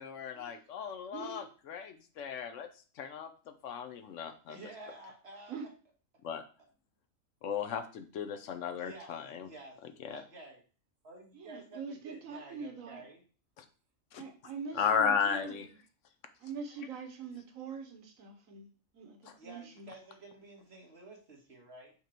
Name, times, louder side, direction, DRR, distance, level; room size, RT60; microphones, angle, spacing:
voice 1, 0.0-2.7 3.0-4.6 6.2-6.4 7.4-9.5 10.0-10.2 13.6-13.7 14.1-14.2 14.7-15.7 19.3-19.4, left 7 dB, 70° left, 9 dB, 1.0 m, -35 dB
voice 2, 1.1-1.4 5.5-5.7 11.3-13.0 14.1-15.8 16.4-18.7 18.9-19.9, right 5 dB, 90° right, 5 dB, 1.4 m, -44 dB
voice 3, 4.5-5.6 8.8-9.8 10.1-10.6 11.0-13.2 19.4-21.9, right 2 dB, 50° right, 0 dB, 1.7 m, -51 dB
5.7 x 3.7 x 4.4 m, 0.38 s
omnidirectional pair, 1.4 m